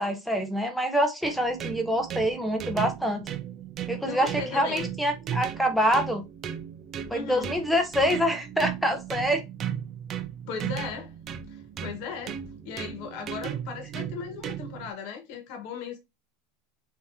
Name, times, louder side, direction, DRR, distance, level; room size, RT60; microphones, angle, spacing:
voice 1, 0.0-3.3 3.9-6.2 7.1-9.4, equal, ahead, 0.8 m, -26 dB
sound 1, 1.2-14.9, right 9 dB, 25° right, 0.5 m, -36 dB
voice 2, 4.0-4.9 7.1-7.5 10.5-11.1 11.5-12.4 12.6-16.0, left 6 dB, 50° left, 1.4 m, -37 dB
6.2 x 2.9 x 2.7 m
supercardioid pair, 165°, 0 cm